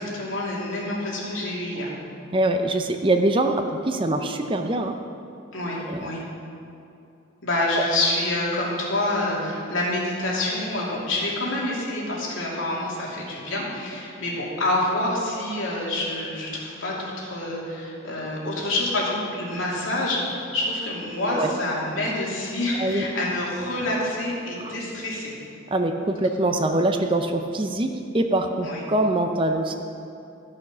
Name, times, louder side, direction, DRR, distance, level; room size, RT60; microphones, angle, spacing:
voice 1, 0.0-1.9 5.5-6.2 7.4-25.3 28.6-28.8, left 1 dB, 85° left, -5 dB, 2.8 m, -27 dB
voice 2, 2.3-4.9 5.9-6.1 7.8-7.9 21.3-21.5 22.8-23.1 24.6-24.8 25.7-27.9 28.1-29.7, right 1 dB, 25° right, 5 dB, 0.6 m, -23 dB
14.0 x 6.4 x 6.1 m, 2.7 s
head